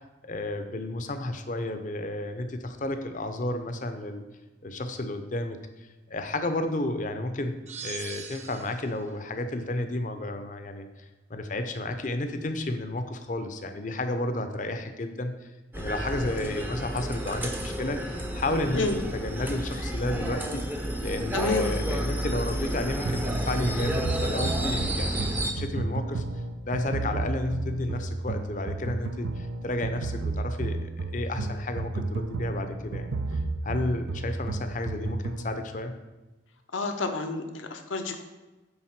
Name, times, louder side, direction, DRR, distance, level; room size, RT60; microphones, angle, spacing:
voice 1, 0.3-4.2 4.6-7.6 7.8-18.8 19.1-20.6 21.0-26.2 26.6-36.0, left 1 dB, 40° left, 8 dB, 0.6 m, -32 dB
sound 1, 7.7-9.0, right 7 dB, 35° right, 0.9 m, -40 dB
sound 2, 15.7-25.5, right 1 dB, 10° right, 0.6 m, -31 dB
voice 2, 21.3-21.7 36.7-38.2, left 3 dB, 90° left, 5 dB, 0.8 m, -29 dB
sound 3, 23.1-35.5, right 3 dB, 85° right, 0.5 m, -32 dB
8.8 x 3.5 x 5.8 m, 1.1 s
head